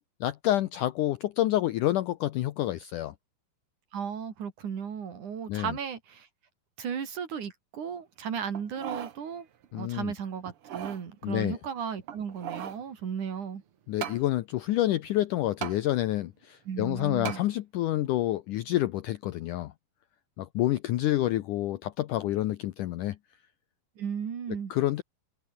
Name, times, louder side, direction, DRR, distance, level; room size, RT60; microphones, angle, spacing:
voice 1, 0.2-3.1 5.5-5.7 9.7-10.1 11.2-11.6 13.9-19.7 20.4-23.2 24.7-25.0, left 14 dB, 85° left, 1.8 m, -28 dB
voice 2, 3.9-6.3 6.8-9.5 9.7-13.6 16.7-17.4 24.0-24.7, right 7 dB, 50° right, 3.8 m, -35 dB
sound 1, 8.5-9.2 9.6-9.7 10.5-11.0 12.0-12.8 14.0-14.2 15.6-15.8 17.2-17.4 18.0-18.1, right 9 dB, 85° right, 1.2 m, -37 dB
omnidirectional pair, 4.7 m